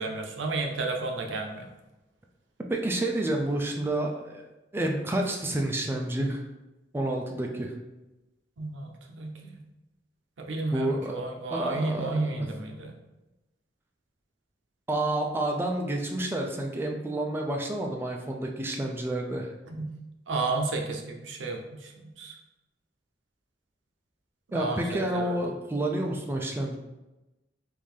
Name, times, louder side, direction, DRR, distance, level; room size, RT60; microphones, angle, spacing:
voice 1, 0.0-1.7 8.6-9.6 10.4-12.9 19.7-19.9 20.3-22.4 24.5-25.4, right 3 dB, 90° right, 3 dB, 0.6 m, -32 dB
voice 2, 2.7-4.4 4.7-6.4 6.9-7.7 10.7-11.1 11.5-12.5 14.9-19.5 24.5-26.8, right 1 dB, 15° right, 1 dB, 0.3 m, -29 dB
3.6 x 2.6 x 3.2 m, 1.0 s
head